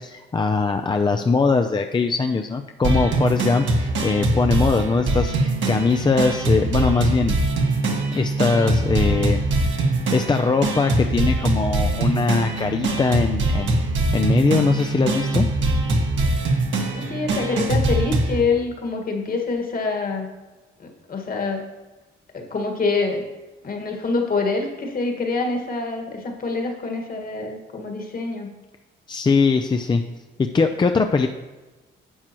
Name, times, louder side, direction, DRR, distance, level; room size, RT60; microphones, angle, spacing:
voice 1, 0.0-7.4 8.1-9.4 9.7-9.8 10.1-15.5 29.1-30.0 30.4-31.3, left 4 dB, 25° left, 5 dB, 0.5 m, -21 dB
sound 1, 2.8-18.4, right 2 dB, 70° right, 1.6 m, -22 dB
voice 2, 16.9-20.3 20.8-21.7 22.3-23.2 23.6-28.5, left 4 dB, 45° left, 2 dB, 1.8 m, -26 dB
11.0 x 7.4 x 3.0 m, 1.2 s
cardioid pair, 90°, 20 cm